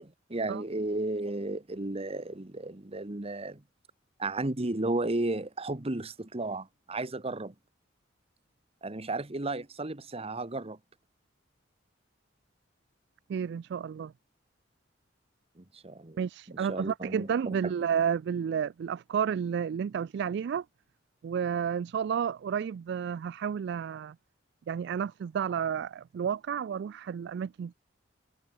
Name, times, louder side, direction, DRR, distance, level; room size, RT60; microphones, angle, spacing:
voice 1, 0.0-3.6 4.2-7.5 8.8-10.8 15.6-17.7, right 2 dB, 30° right, 1.2 m, -34 dB
voice 2, 13.3-14.1 16.2-20.6 21.2-24.2 24.7-27.7, right 7 dB, 60° right, 0.3 m, -31 dB
head